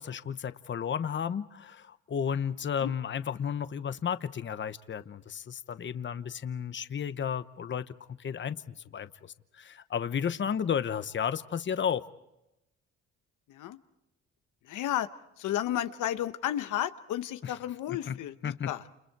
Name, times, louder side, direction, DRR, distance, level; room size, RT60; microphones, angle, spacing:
voice 1, 0.0-7.9 8.2-8.6 8.9-12.0 17.4-17.5 17.9-18.2 18.4-18.7, left 7 dB, 40° left, 13 dB, 0.9 m, -33 dB
voice 2, 14.6-15.1 15.4-18.8, left 12 dB, 80° left, 11 dB, 0.9 m, -32 dB
29.5 x 28.5 x 4.7 m, 0.90 s
cardioid pair, 90°, 30 cm